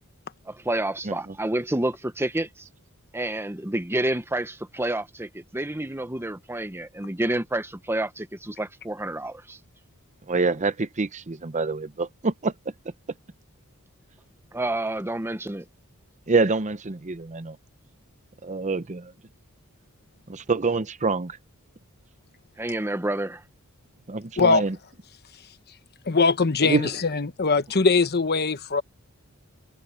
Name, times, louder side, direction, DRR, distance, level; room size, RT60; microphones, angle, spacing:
voice 1, 0.5-2.5 3.1-9.6 14.5-15.7 22.6-23.4, right 1 dB, 10° right, 1.0 m, -29 dB
voice 2, 1.0-1.4 10.3-12.5 16.3-17.6 18.4-19.1 20.3-21.4 24.1-24.8 26.6-26.9, right 3 dB, 35° right, 0.8 m, -26 dB
voice 3, 26.0-28.8, left 4 dB, 45° left, 1.1 m, -21 dB
head